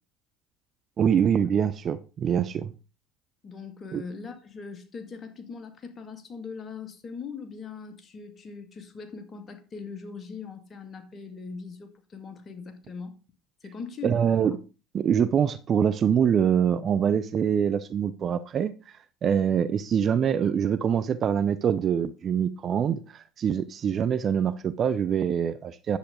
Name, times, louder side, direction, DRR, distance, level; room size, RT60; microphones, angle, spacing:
voice 1, 1.0-2.7 3.9-4.0 14.0-14.5 14.9-18.7 19.2-26.0, right 8 dB, 40° right, 0.7 m, -24 dB
voice 2, 3.4-13.1 13.6-14.3 15.4-15.5, left 5 dB, 35° left, 2.2 m, -41 dB
10.5 x 8.2 x 3.9 m
hypercardioid pair, 70°, 0 cm